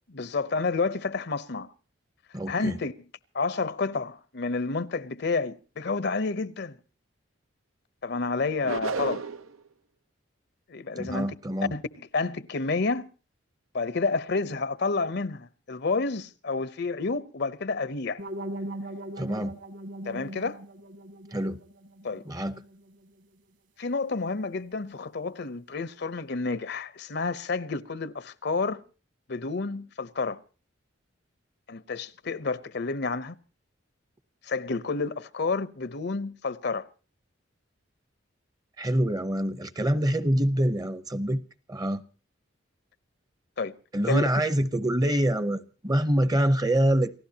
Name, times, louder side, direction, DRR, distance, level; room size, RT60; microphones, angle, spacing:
voice 1, 0.1-1.7 2.5-2.9 3.3-6.8 8.0-9.3 10.7-11.3 11.7-13.1 13.7-18.2 20.0-20.6 22.0-22.2 23.8-28.8 29.3-30.4 31.7-33.4 34.4-36.9 43.6-43.7 44.1-44.2, left 3 dB, 55° left, 0.7 m, -30 dB
voice 2, 2.3-2.8 11.0-11.7 19.2-19.6 21.3-21.6 22.3-22.6 38.8-41.4 41.7-42.0 43.9-47.1, right 1 dB, 20° right, 0.7 m, -25 dB
sound 1, 8.6-9.6, right 4 dB, 90° right, 0.9 m, -31 dB
sound 2, 18.2-23.1, right 1 dB, 60° right, 2.3 m, -40 dB
29.0 x 15.5 x 2.8 m
head